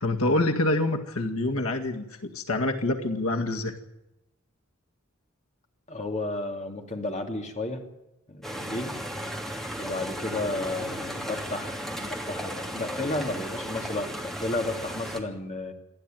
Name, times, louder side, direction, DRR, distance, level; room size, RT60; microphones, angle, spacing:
voice 1, 0.0-3.8, left 2 dB, 85° left, 4 dB, 2.0 m, -26 dB
voice 2, 5.9-7.8 8.3-9.0 9.8-15.7, left 2 dB, 35° left, 3 dB, 2.7 m, -33 dB
sound 1, 8.4-15.2, equal, ahead, 2.9 m, -35 dB
28.0 x 11.5 x 9.2 m, 0.93 s
head